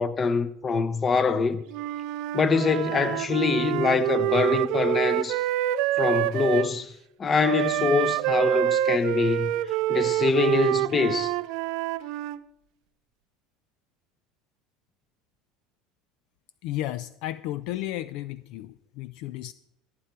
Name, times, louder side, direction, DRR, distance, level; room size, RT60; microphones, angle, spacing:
voice 1, 0.0-1.6 2.3-5.4 6.0-6.9 7.2-9.5 9.9-11.3, left 5 dB, 30° left, 0.9 m, -24 dB
Wind instrument woodwind instrument, 1.7-6.7 7.4-12.4, right 14 dB, 65° right, 0.5 m, -26 dB
voice 2, 16.6-19.5, left 14 dB, 65° left, 0.3 m, -33 dB
14.5 x 7.7 x 4.5 m
supercardioid pair, 95°, 0 cm